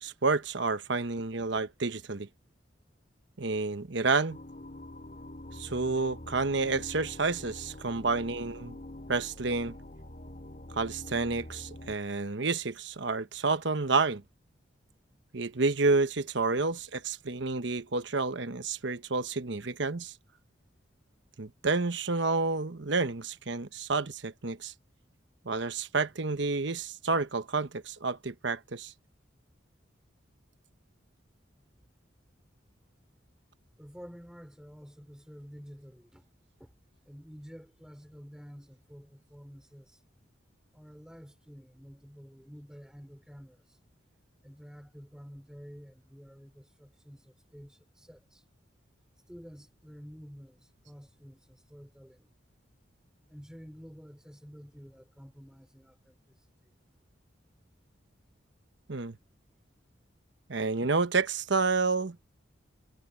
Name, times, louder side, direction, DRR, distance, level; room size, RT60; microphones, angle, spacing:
voice 1, 0.0-2.3 3.4-4.4 5.5-8.8 9.1-9.8 10.7-14.2 15.3-20.1 21.4-24.7 25.4-28.9 58.9-59.2 60.5-62.2, right 3 dB, 65° right, 1.0 m, -29 dB
sound 1, 4.3-12.0, left 1 dB, 40° left, 4.5 m, -45 dB
voice 2, 33.8-36.2 36.6-36.7 37.1-40.0 40.7-43.8 44.4-48.4 49.3-52.3 53.3-56.2 56.6-56.8, equal, 5° right, 4.1 m, -50 dB
head